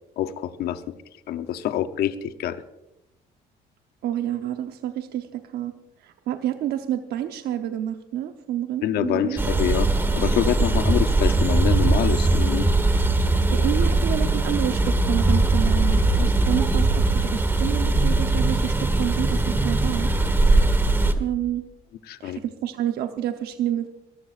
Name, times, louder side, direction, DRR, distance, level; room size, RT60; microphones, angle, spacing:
voice 1, 0.2-0.8 1.3-2.6 8.8-9.9 10.1-12.7 22.1-22.4, left 11 dB, 70° left, 10 dB, 0.8 m, -26 dB
voice 2, 4.0-5.7 6.0-9.5 13.5-20.1 21.2-21.6 22.2-23.9, right 11 dB, 70° right, 6 dB, 0.9 m, -29 dB
sound 1, 9.4-21.1, right 2 dB, 15° right, 1.3 m, -20 dB
22.5 x 14.5 x 2.5 m, 0.91 s
cardioid pair, 110°, 17 cm